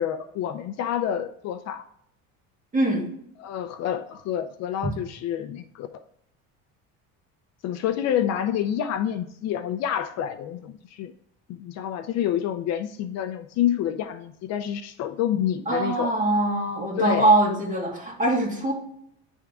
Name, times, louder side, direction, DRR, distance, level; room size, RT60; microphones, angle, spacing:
voice 1, 0.0-1.8 3.4-5.9 7.6-11.1 11.5-16.1 17.0-17.3, left 10 dB, 55° left, 8 dB, 0.5 m, -28 dB
voice 2, 2.7-3.0 15.7-18.7, right 2 dB, 25° right, -3 dB, 2.7 m, -22 dB
10.0 x 3.6 x 3.5 m, 0.71 s
cardioid pair, 145°, 32 cm